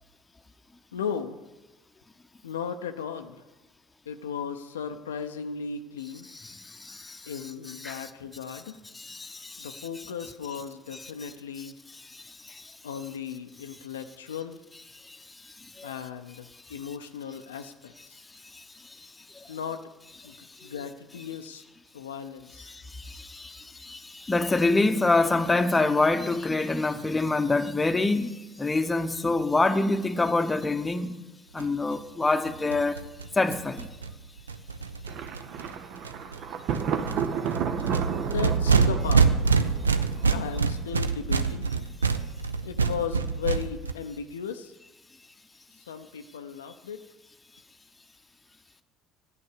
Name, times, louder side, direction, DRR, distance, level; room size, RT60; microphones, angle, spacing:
voice 1, 0.9-1.4 2.4-3.5 4.1-6.3 7.3-8.8 9.6-11.7 12.8-14.6 15.8-18.2 19.5-19.9 20.2-21.6 21.9-22.7 38.2-39.4 40.3-41.7 42.6-44.7 45.8-47.0, left 7 dB, 85° left, 0.4 m, -36 dB
voice 2, 6.4-7.3 7.8-8.0 8.9-9.9 12.1-12.7 15.0-15.9 18.5-19.5 20.3-20.7 22.7-31.1 31.5-33.0 33.3-33.9, left 3 dB, 20° left, 0.8 m, -27 dB
sound 1, 31.6-31.7 31.9-32.0 32.2-32.3 32.5-35.7 36.0-36.4 36.7-43.9, right 5 dB, 90° right, 0.4 m, -26 dB
Thunder, 35.1-40.9, right 7 dB, 55° right, 0.7 m, -32 dB
9.9 x 8.7 x 6.4 m
hypercardioid pair, 60°, 0 cm